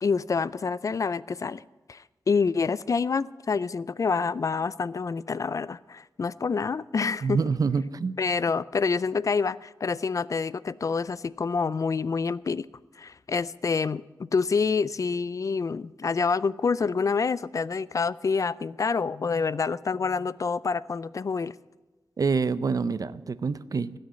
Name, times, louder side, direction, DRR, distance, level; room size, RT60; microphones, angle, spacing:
voice 1, 0.0-1.6 1.9-7.4 8.2-12.7 13.0-21.5, left 5 dB, 45° left, 19 dB, 0.4 m, -27 dB
voice 2, 7.2-8.1 22.2-24.0, right 5 dB, 55° right, 16 dB, 0.5 m, -26 dB
16.5 x 6.5 x 9.4 m, 1.2 s
wide cardioid pair, 115°, 7 cm